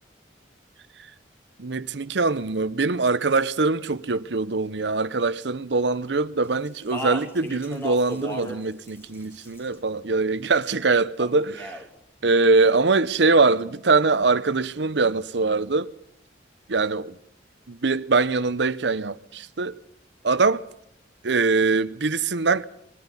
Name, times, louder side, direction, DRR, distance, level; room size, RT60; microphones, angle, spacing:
voice 1, 1.6-11.8 12.2-15.9 16.7-17.2 17.7-19.8 20.2-20.7 21.2-22.6, right 3 dB, 65° right, 0.8 m, -23 dB
Speech, 6.6-8.6 8.9-9.7 11.2-11.8, equal, 15° left, 2.6 m, -35 dB
22.0 x 13.5 x 9.9 m
head